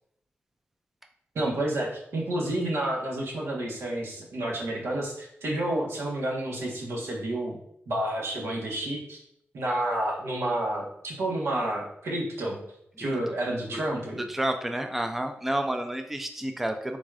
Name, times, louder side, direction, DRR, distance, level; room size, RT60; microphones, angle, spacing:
voice 1, 1.3-7.6 7.9-9.2 9.5-12.6 13.0-14.2, right 1 dB, 85° right, -2 dB, 1.3 m, -30 dB
voice 2, 14.3-17.0, right 1 dB, 5° right, 6 dB, 0.3 m, -30 dB
4.0 x 2.5 x 4.7 m, 0.74 s
wide cardioid pair, 140°, 4 cm